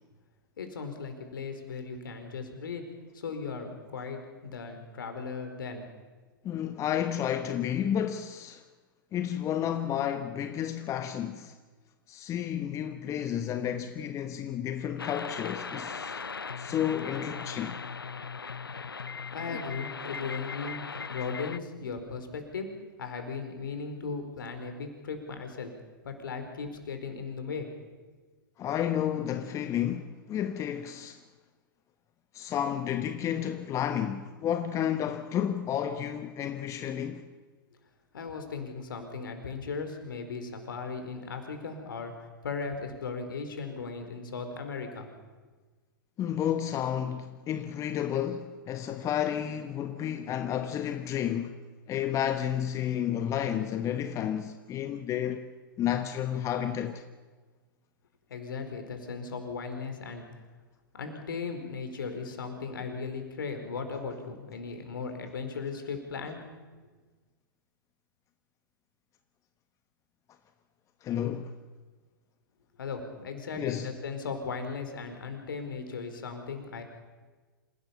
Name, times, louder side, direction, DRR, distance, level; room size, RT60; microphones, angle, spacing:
voice 1, 0.6-2.9 3.1-5.8 19.3-20.8 21.1-22.7 23.0-25.7 26.0-27.7 38.1-45.1 58.3-60.5 61.0-66.4 72.8-76.8, left 5 dB, 70° left, 4.6 m, -37 dB
voice 2, 6.4-8.6 9.1-11.6 12.1-16.2 16.6-17.8 19.5-19.6 28.6-31.2 32.3-37.3 46.2-51.6 51.9-55.5 55.8-57.0 71.0-71.5 73.6-73.9, left 10 dB, 25° left, 1.2 m, -31 dB
sound 1, 15.0-21.6, left 5 dB, 85° left, 0.7 m, -38 dB
27.0 x 17.5 x 7.2 m
figure-of-eight pair, 105°, 12 cm